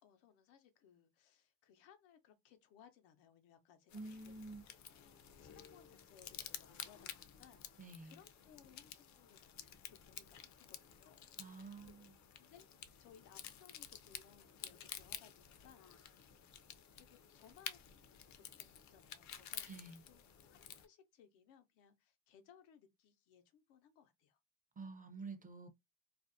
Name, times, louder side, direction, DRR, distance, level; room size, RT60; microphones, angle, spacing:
voice 1, 0.0-4.6 5.4-12.0 12.4-12.7 13.0-16.6 16.9-24.4, left 8 dB, 85° left, 0.7 m, -65 dB
sound 1, 3.9-20.9, left 9 dB, 45° left, 0.5 m, -52 dB
voice 2, 3.9-4.6 7.8-8.2 11.4-12.1 19.7-20.0 24.8-25.7, right 3 dB, 20° right, 0.5 m, -49 dB
2.5 x 2.0 x 2.5 m
supercardioid pair, 90°, 42 cm